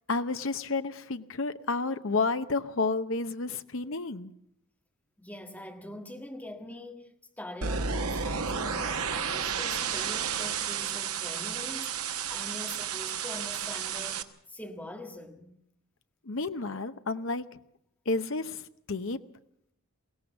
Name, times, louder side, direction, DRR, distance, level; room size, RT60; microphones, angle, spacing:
voice 1, 0.1-4.3 16.2-17.4 18.1-19.2, left 3 dB, 60° left, 0.9 m, -31 dB
voice 2, 5.2-15.5, left 1 dB, 5° left, 1.7 m, -43 dB
sound 1, 7.6-14.2, right 6 dB, 85° right, 1.2 m, -32 dB
21.5 x 17.0 x 7.2 m
head